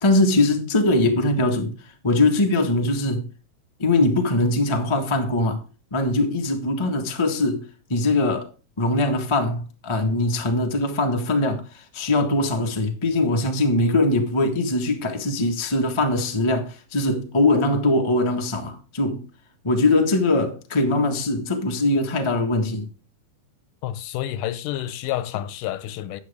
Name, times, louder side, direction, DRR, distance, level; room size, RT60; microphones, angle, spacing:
voice 1, 0.0-1.7 2.0-3.2 3.8-5.6 5.9-7.6 7.9-8.5 8.8-19.2 19.6-22.9, left 2 dB, 35° left, 0.4 m, -21 dB
voice 2, 23.8-26.2, left 12 dB, 90° left, 2.4 m, -29 dB
12.0 x 8.1 x 3.5 m
omnidirectional pair, 3.6 m